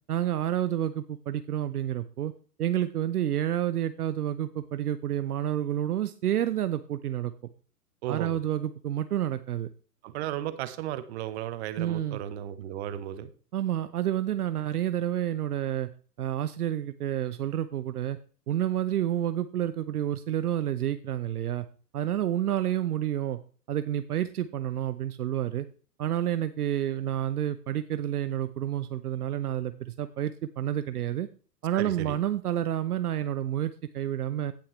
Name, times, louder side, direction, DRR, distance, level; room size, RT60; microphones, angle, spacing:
voice 1, 0.1-2.3 2.6-7.3 8.1-9.7 11.8-12.2 13.5-15.9 16.2-18.2 18.5-21.7 21.9-23.4 23.7-25.7 26.0-31.3 31.6-34.5, right 11 dB, 65° right, 11 dB, 0.8 m, -29 dB
voice 2, 8.0-8.3 10.0-13.3 31.7-32.2, right 11 dB, 40° right, 12 dB, 1.1 m, -35 dB
16.5 x 5.7 x 3.2 m, 0.38 s
figure-of-eight pair, 115°, 48 cm